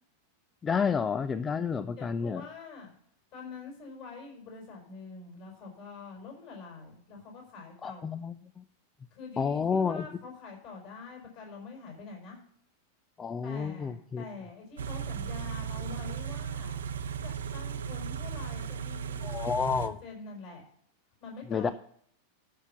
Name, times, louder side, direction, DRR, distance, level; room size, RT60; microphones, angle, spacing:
voice 1, 0.6-2.4 7.8-8.6 9.4-10.1 13.2-14.3 19.2-20.0 21.5-21.7, left 6 dB, 20° left, 15 dB, 0.4 m, -30 dB
voice 2, 2.0-2.9 3.3-8.2 9.1-12.4 13.4-16.8 17.2-20.6 21.2-21.7, left 4 dB, 45° left, 0 dB, 5.6 m, -45 dB
Car / Idling, 14.8-19.9, right 7 dB, 65° right, 0.8 m, -36 dB
13.0 x 5.9 x 7.0 m, 0.64 s
figure-of-eight pair, 90°, 0 cm